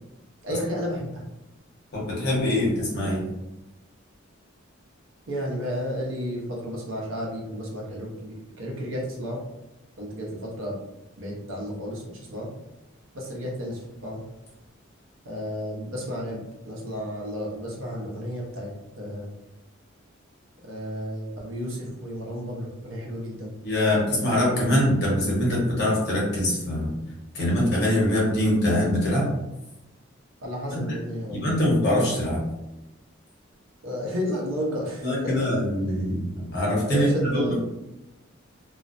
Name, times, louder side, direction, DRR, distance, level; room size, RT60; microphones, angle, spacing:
voice 1, 0.4-1.2 5.3-9.4 10.0-10.8 11.2-12.5 13.1-14.2 15.2-18.7 19.0-19.3 20.6-23.5 30.4-31.5 33.8-35.5 36.9-37.5, equal, 75° right, -2 dB, 0.7 m, -32 dB
voice 2, 1.9-3.2 23.6-26.9 27.3-29.3 30.7-31.0 31.3-32.4 35.0-37.5, left 1 dB, 55° left, -5 dB, 0.9 m, -23 dB
2.4 x 2.0 x 2.5 m, 0.93 s
head